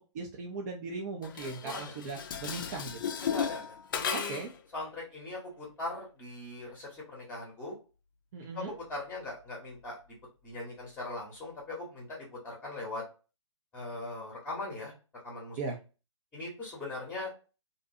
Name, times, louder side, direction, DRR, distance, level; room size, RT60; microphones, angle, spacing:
voice 1, 0.1-3.0 4.1-4.5 8.3-8.8 15.6-15.8, right 4 dB, 35° right, 0 dB, 0.4 m, -38 dB
Dishes pots and pans, 1.2-4.6, left 7 dB, 45° left, 0.4 m, -35 dB
voice 2, 1.6-2.0 3.2-3.6 3.9-4.4 4.7-7.7 8.9-10.0 10.4-13.0 13.7-14.9 15.2-15.6 16.3-17.3, left 2 dB, 10° left, -3 dB, 0.8 m, -40 dB
2.6 x 2.2 x 2.5 m, 0.32 s
figure-of-eight pair, 135°, 16 cm